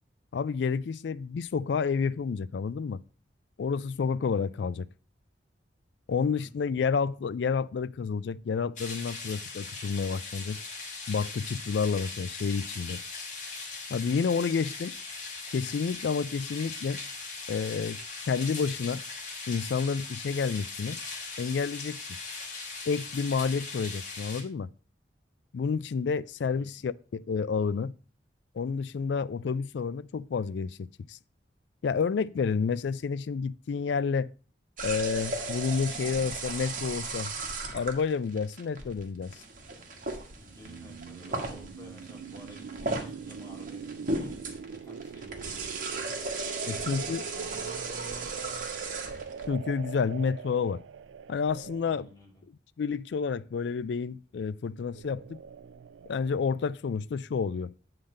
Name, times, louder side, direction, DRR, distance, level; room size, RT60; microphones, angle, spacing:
voice 1, 0.3-3.0 3.6-4.9 6.1-10.6 11.1-13.0 13.9-14.9 15.5-17.0 17.5-18.0 18.3-19.0 19.5-21.0 21.4-22.0 22.9-24.7 25.5-27.9 28.5-31.2 31.8-34.3 34.8-37.3 37.7-39.4 46.7-47.2 49.5-50.8 51.3-52.1 52.8-55.4 56.1-57.7, left 5 dB, 70° left, 0.4 m, -30 dB
sound 1, 8.8-24.4, left 4 dB, 45° left, 2.1 m, -40 dB
sound 2, 34.8-49.5, right 3 dB, 45° right, 1.4 m, -36 dB
voice 2, 40.3-44.3 44.7-46.1 46.7-48.7 51.8-52.4, equal, 20° left, 2.8 m, -50 dB
sound 3, 40.4-52.1 54.8-56.2, right 6 dB, 85° right, 0.3 m, -42 dB
8.6 x 3.9 x 6.4 m
head